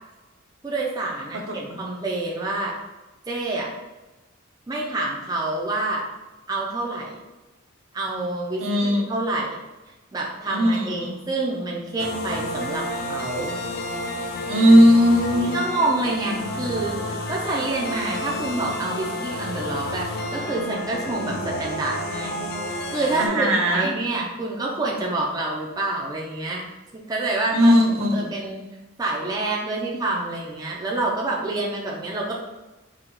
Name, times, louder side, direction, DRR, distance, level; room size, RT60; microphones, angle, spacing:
voice 1, 0.6-2.8 3.3-3.7 4.7-6.1 6.5-7.2 7.9-9.6 10.1-13.6 15.4-26.6 27.1-27.7 28.1-28.6 29.0-32.4, right 2 dB, 20° right, -3 dB, 0.4 m, -27 dB
voice 2, 8.6-9.0 10.5-11.1 14.5-15.6 23.2-23.9 27.5-28.3, equal, 70° right, 0 dB, 0.8 m, -17 dB
sound 1, 12.0-23.3, left 1 dB, 50° left, 0.5 m, -30 dB
4.3 x 2.3 x 3.8 m, 1.1 s
head